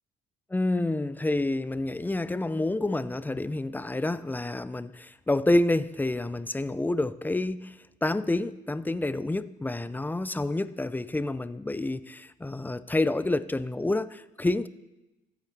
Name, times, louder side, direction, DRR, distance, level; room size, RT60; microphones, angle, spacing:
voice 1, 0.5-14.7, left 2 dB, 10° left, 15 dB, 0.4 m, -28 dB
15.0 x 8.7 x 3.3 m, 0.99 s
cardioid pair, 90°, 20 cm